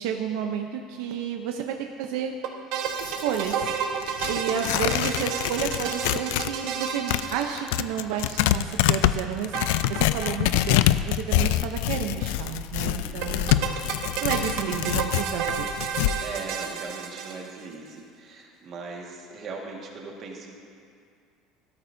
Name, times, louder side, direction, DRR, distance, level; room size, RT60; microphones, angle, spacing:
voice 1, 0.0-2.4 3.0-3.8 4.1-9.6 9.9-13.7 14.2-15.7, right 8 dB, 70° right, 4 dB, 0.7 m, -31 dB
sound 1, 2.4-8.2 9.5-10.4 10.6-10.7 10.9-11.0 13.2-17.7, right 7 dB, 55° right, 1.1 m, -31 dB
Tearing, 2.9-6.5 6.8-16.1, left 13 dB, 85° left, 0.3 m, -25 dB
voice 2, 12.8-13.4 16.2-20.5, right 4 dB, 30° right, -1 dB, 1.7 m, -40 dB
17.0 x 13.0 x 2.7 m, 2.2 s
cardioid pair, 175°, 0 cm